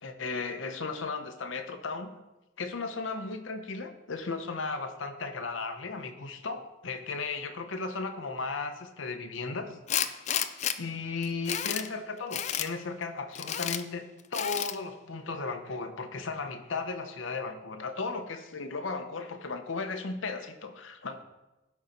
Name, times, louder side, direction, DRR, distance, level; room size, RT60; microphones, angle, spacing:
voice 1, 0.0-2.1 2.6-9.8 10.8-21.2, left 4 dB, 85° left, 7 dB, 0.8 m, -35 dB
Tools, 9.9-10.8 11.2-11.9 12.3-12.7 13.3-13.8 14.3-14.8, left 9 dB, 35° left, 0.3 m, -31 dB
12.0 x 4.2 x 5.2 m, 1.0 s
head